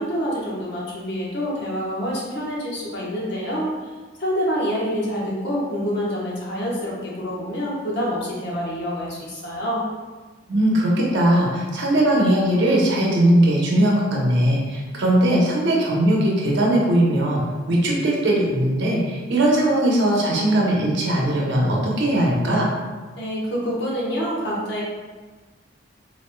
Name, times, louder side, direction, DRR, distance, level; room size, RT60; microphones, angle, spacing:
voice 1, 0.0-3.7 4.2-9.8 23.2-24.8, equal, 65° left, -5 dB, 1.1 m, -26 dB
voice 2, 10.5-17.4 17.7-22.7, right 1 dB, 65° right, -3 dB, 0.8 m, -19 dB
4.1 x 3.1 x 2.2 m, 1.3 s
head